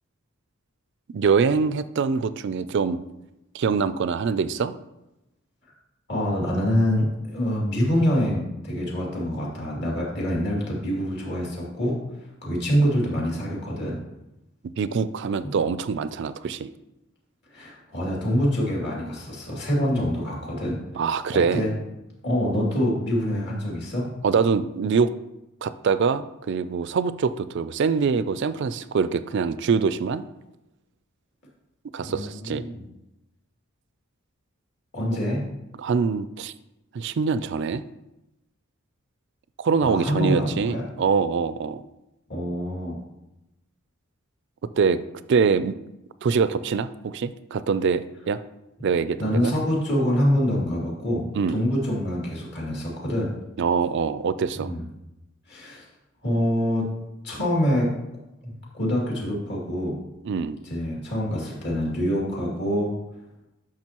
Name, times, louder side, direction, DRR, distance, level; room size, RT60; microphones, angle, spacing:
voice 1, 1.1-3.0 3.5-4.7 14.8-16.7 21.0-21.6 24.2-25.1 25.6-30.2 31.9-32.7 35.8-36.5 36.9-37.8 39.6-41.8 44.8-45.0 45.3-45.7 46.2-48.4 48.8-49.5 51.3-51.6 53.6-54.7 60.2-60.6, right 5 dB, 55° right, 14 dB, 0.4 m, -24 dB
voice 2, 6.1-12.0 12.4-14.0 17.5-20.8 21.3-21.8 22.2-24.1 32.0-32.8 34.9-35.5 39.8-40.8 42.3-43.0 49.2-53.3 54.5-54.8 55.5-55.9 56.2-56.9 57.2-58.0 58.4-60.0 60.6-62.9, equal, 55° left, -4 dB, 2.5 m, -25 dB
10.5 x 6.1 x 2.9 m, 0.94 s
head